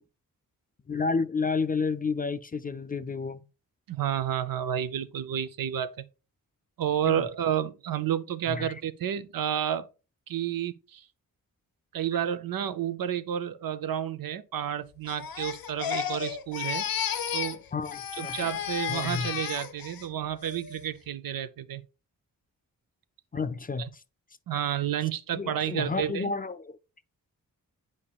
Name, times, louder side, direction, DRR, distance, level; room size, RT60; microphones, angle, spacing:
voice 1, 0.9-3.4 7.1-7.2 8.5-8.7 17.7-18.5 18.9-19.3 23.3-23.9 25.3-26.8, left 4 dB, 25° left, 0.3 m, -31 dB
voice 2, 3.9-6.0 6.8-9.9 10.3-11.1 11.9-16.9 17.3-17.6 18.2-21.8 23.8-23.9 24.5-26.3, right 10 dB, 80° right, 0.6 m, -30 dB
Crying sobbing, 15.1-17.6 17.8-20.0 20.4-20.8, left 9 dB, 90° left, 0.7 m, -33 dB
8.4 x 5.0 x 2.3 m
wide cardioid pair, 90°, 34 cm